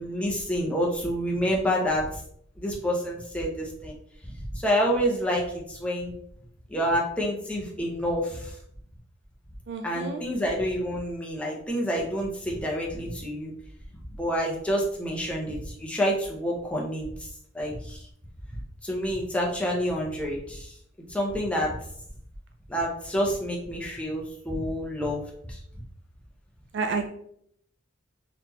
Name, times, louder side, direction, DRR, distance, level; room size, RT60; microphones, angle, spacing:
voice 1, 0.0-2.2 2.6-3.9 4.5-6.1 6.7-8.6 9.8-13.5 14.2-17.3 17.5-18.0 18.8-20.7 21.1-21.7 22.7-25.2 25.5-25.6, equal, 5° left, -3 dB, 0.8 m, -28 dB
voice 2, 9.7-10.2 26.7-27.1, right 4 dB, 55° right, 5 dB, 0.3 m, -30 dB
4.0 x 3.2 x 2.9 m, 0.68 s
head